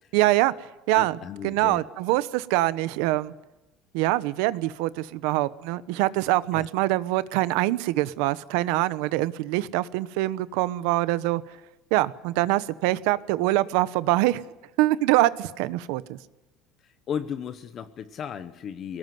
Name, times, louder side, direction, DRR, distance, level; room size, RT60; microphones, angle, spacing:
voice 1, 0.1-1.2 1.4-3.3 3.9-11.4 11.9-14.4 14.8-16.2, right 17 dB, 70° right, 16 dB, 1.1 m, -24 dB
voice 2, 0.9-1.9 6.5-6.7 16.8-19.0, left 8 dB, 30° left, 11 dB, 1.0 m, -35 dB
23.5 x 19.0 x 9.5 m, 1.0 s
cardioid pair, 175°, 0 cm